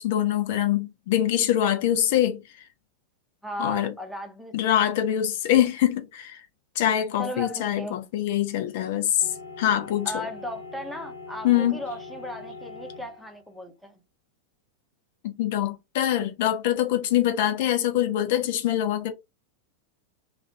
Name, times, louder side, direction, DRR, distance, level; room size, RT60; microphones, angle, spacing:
voice 1, 0.0-2.4 3.6-3.9 4.5-6.4 6.8-9.3 9.6-10.2 11.4-11.8 15.2-19.1, left 11 dB, 55° left, 0.5 m, -24 dB
voice 2, 3.4-4.8 7.2-8.0 10.0-13.9, equal, ahead, 0.8 m, -36 dB
sound 1, 9.2-13.4, left 3 dB, 80° right, 1.2 m, -42 dB
3.1 x 2.4 x 2.6 m
figure-of-eight pair, 90°, 0 cm